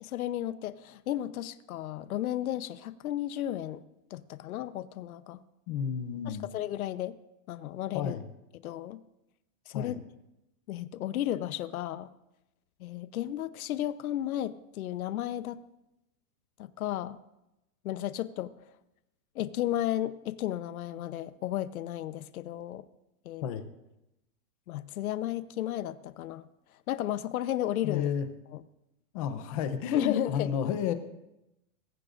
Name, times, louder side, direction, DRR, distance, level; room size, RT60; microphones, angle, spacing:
voice 1, 0.0-3.8 4.1-5.4 6.3-7.2 7.5-8.2 8.6-9.0 9.7-10.0 10.7-12.1 12.8-15.6 16.6-17.2 17.8-18.5 19.3-22.8 23.2-23.4 24.7-26.4 26.9-28.1 29.9-30.5, left 12 dB, 85° left, 13 dB, 0.9 m, -33 dB
voice 2, 5.7-6.5 7.9-8.2 9.7-10.0 23.4-23.6 27.8-28.3 29.1-30.9, left 8 dB, 25° left, 10 dB, 0.7 m, -31 dB
21.5 x 15.0 x 2.6 m, 0.91 s
supercardioid pair, 175°, 42 cm